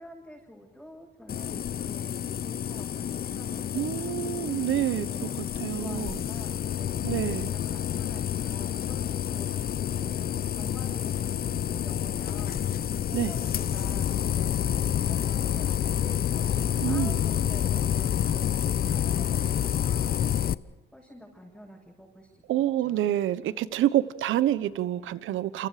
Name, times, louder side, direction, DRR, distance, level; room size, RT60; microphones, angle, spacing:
voice 1, 0.0-5.3 5.7-7.0 7.4-9.7 10.0-12.7 13.1-20.6 20.9-22.4 22.8-23.2, equal, ahead, -4 dB, 7.7 m, -48 dB
sound 1, 1.3-20.5, left 10 dB, 50° left, 0.7 m, -28 dB
voice 2, 3.8-5.3 5.6-6.2 7.0-7.5 13.1-13.3 16.8-17.2 22.5-25.7, right 13 dB, 80° right, 15 dB, 1.1 m, -27 dB
28.0 x 27.5 x 5.1 m, 1.2 s
cardioid pair, 90°, 20 cm